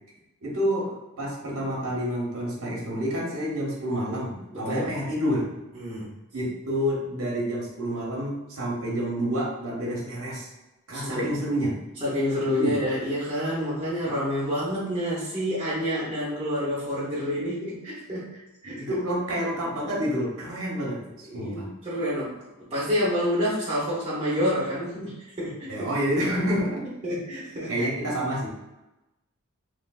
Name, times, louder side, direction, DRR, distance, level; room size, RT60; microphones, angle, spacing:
voice 1, 0.4-5.5 6.3-10.5 10.9-11.8 12.6-12.8 18.6-21.7 25.7-26.9 27.5-28.5, equal, 80° right, -3 dB, 1.1 m, -28 dB
voice 2, 4.5-4.9 5.7-6.1 10.9-11.3 12.0-18.8 21.3-22.4 22.7-25.9 27.0-27.8, equal, 25° right, -10 dB, 0.9 m, -28 dB
3.2 x 3.2 x 2.3 m, 1.0 s
head